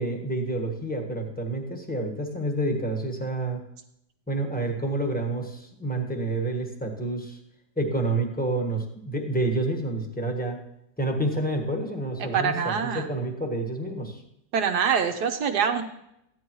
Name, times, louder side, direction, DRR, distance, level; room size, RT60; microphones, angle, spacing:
voice 1, 0.0-3.6 4.3-7.4 7.8-10.6 11.0-14.2, right 2 dB, 5° left, 2 dB, 1.2 m, -28 dB
voice 2, 12.3-13.1 14.5-15.8, right 7 dB, 70° right, 5 dB, 1.3 m, -24 dB
15.0 x 10.5 x 3.1 m, 0.80 s
omnidirectional pair, 1.9 m